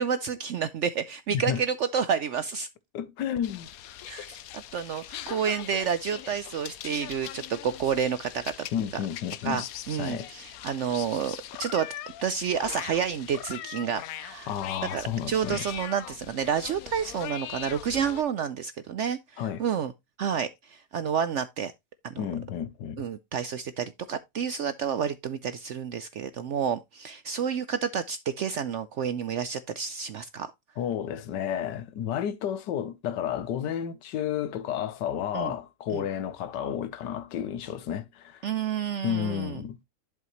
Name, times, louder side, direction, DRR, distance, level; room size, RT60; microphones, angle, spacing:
voice 1, 0.0-2.7 4.1-8.7 9.4-11.9 12.2-14.5 14.9-19.9 20.2-21.7 22.0-22.2 23.0-30.5 35.3-35.5 35.9-36.0 38.4-39.6, right 7 dB, 75° right, 0.6 m, -30 dB
voice 2, 1.3-1.6 2.9-3.7 8.7-9.6 10.0-10.3 14.5-15.6 19.4-19.6 22.2-23.0 30.8-38.4 39.0-39.8, left 9 dB, 90° left, 1.4 m, -31 dB
sound 1, 3.4-18.2, left 12 dB, 65° left, 1.0 m, -41 dB
11.0 x 5.6 x 3.0 m
omnidirectional pair, 1.8 m